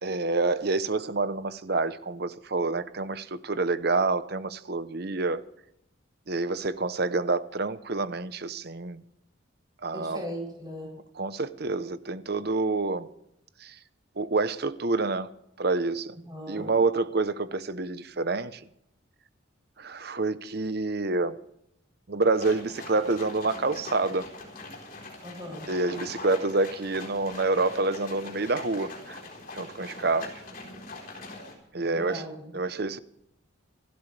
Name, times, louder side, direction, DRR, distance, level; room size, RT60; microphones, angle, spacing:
voice 1, 0.0-5.4 6.3-9.0 9.8-10.2 11.2-13.1 13.6-13.8 14.2-15.3 15.6-16.2 16.5-18.6 19.8-21.4 22.1-24.3 25.7-29.2 29.5-30.4 31.7-32.2 32.5-33.0, right 3 dB, 50° right, 0.8 m, -28 dB
voice 2, 9.9-10.9 16.3-16.7 25.2-25.7 31.8-32.5, equal, 20° right, 7.6 m, -38 dB
sound 1, 22.3-31.5, left 3 dB, 45° left, 4.2 m, -42 dB
27.0 x 12.5 x 3.4 m
head